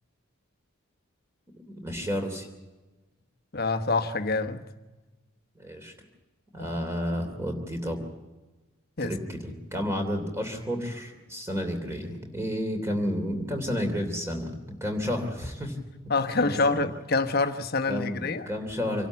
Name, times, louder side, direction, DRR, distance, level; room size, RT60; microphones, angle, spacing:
voice 1, 1.7-2.5 5.6-5.9 6.5-8.0 9.0-15.8 16.4-16.8 17.9-19.1, equal, 10° right, 2.9 m, -31 dB
voice 2, 3.5-4.6 9.0-9.1 16.1-18.5, left 3 dB, 45° left, 1.1 m, -26 dB
26.0 x 12.0 x 8.2 m
head